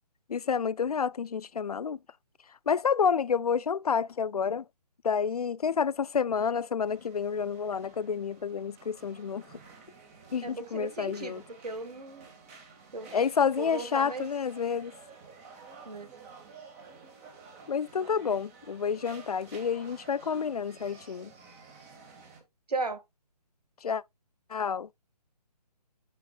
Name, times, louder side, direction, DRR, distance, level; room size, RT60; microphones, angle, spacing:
voice 1, 0.3-2.0 2.7-4.6 5.0-9.5 10.3-11.4 13.1-14.9 17.7-21.3 23.8-24.0 24.5-24.9, left 6 dB, 60° left, 0.4 m, -29 dB
sound 1, 6.8-22.4, right 4 dB, 20° right, 2.0 m, -52 dB
voice 2, 10.4-12.3 12.9-13.1 13.6-14.3 15.9-16.1 22.7-23.0, right 3 dB, 65° right, 1.9 m, -36 dB
10.5 x 6.4 x 2.4 m
figure-of-eight pair, 145°, 21 cm